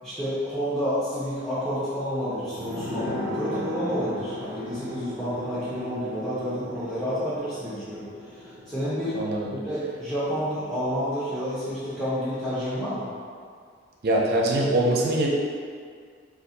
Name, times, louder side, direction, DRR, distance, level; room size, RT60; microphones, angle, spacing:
voice 1, 0.0-8.0 8.3-9.2 9.5-13.1, equal, 5° left, -14 dB, 0.7 m, -29 dB
sound 1, 2.5-11.8 12.1-12.2, left 1 dB, 15° right, 1.4 m, -37 dB
voice 2, 9.2-9.5 14.0-15.3, right 1 dB, 50° right, -2 dB, 0.5 m, -23 dB
2.6 x 2.4 x 4.0 m, 2.1 s
head